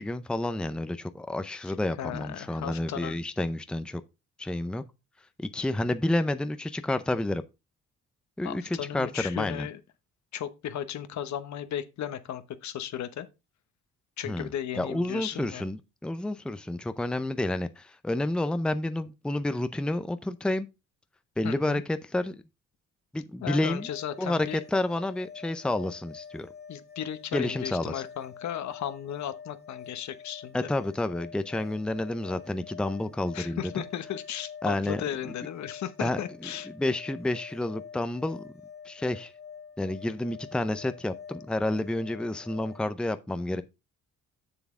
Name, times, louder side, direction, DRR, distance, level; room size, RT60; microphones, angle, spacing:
voice 1, 0.0-4.0 4.4-4.8 5.4-7.4 8.4-9.7 14.2-20.7 21.4-22.4 23.1-23.9 24.2-26.5 27.3-28.0 30.5-33.8 34.6-35.3 36.0-38.4 38.8-39.3 39.8-43.6, left 1 dB, 5° left, 0.6 m, -30 dB
voice 2, 2.0-3.2 8.4-9.8 10.3-13.3 14.2-15.6 21.4-21.8 23.4-24.6 26.7-30.7 33.3-36.7, left 10 dB, 65° left, 1.0 m, -35 dB
sound 1, 23.6-42.8, left 6 dB, 35° left, 1.4 m, -47 dB
7.1 x 7.1 x 3.7 m
cardioid pair, 90°, 30 cm